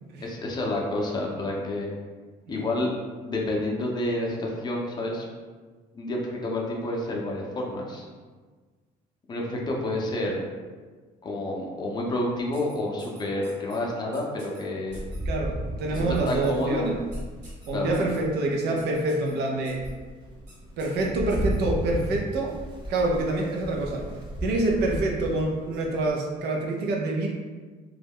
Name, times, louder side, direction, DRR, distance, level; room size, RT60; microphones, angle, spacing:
voice 1, 0.2-1.9 2.5-2.9 3.2-5.3 5.9-8.0 9.3-10.4 11.2-15.0 15.9-16.9 17.7-18.1, left 1 dB, 25° left, -2 dB, 0.5 m, -29 dB
sound 1, 12.5-13.8 14.1-14.6 14.9-15.2 15.9-16.5 17.1-18.2 18.8-19.3 19.6-19.9 20.5-20.6 20.8-21.6, right 2 dB, 45° right, 1.2 m, -51 dB
Rain, 14.9-18.4 18.9-19.0 19.5-26.1, equal, 25° right, 0.6 m, -34 dB
voice 2, 15.2-17.0 17.7-19.8 20.8-22.5 22.9-24.0 24.4-27.3, right 2 dB, 75° right, 0 dB, 0.5 m, -26 dB
2.3 x 2.1 x 3.4 m, 1.4 s
cardioid pair, 110°, 17 cm